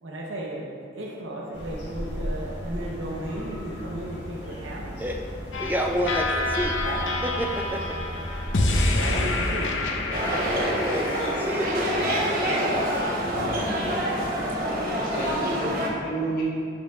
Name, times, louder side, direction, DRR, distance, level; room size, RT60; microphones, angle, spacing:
voice 1, 0.0-4.9 6.8-7.1 8.9-9.7 10.2-10.7 13.4-13.7, right 1 dB, 90° right, -3 dB, 0.8 m, -35 dB
sound 1, 1.5-10.6, equal, 70° left, 1.6 m, -37 dB
voice 2, 4.9-6.8 7.2-8.0 10.4-12.0 14.1-14.2, equal, 10° right, 2 dB, 0.4 m, -30 dB
sound 2, 5.5-11.7, left 2 dB, 90° left, 0.7 m, -27 dB
sound 3, 10.1-15.9, equal, 50° right, 1.1 m, -26 dB
voice 3, 11.9-13.1 14.6-16.5, right 2 dB, 50° left, -6 dB, 1.6 m, -33 dB
10.0 x 5.5 x 2.4 m, 2.4 s
head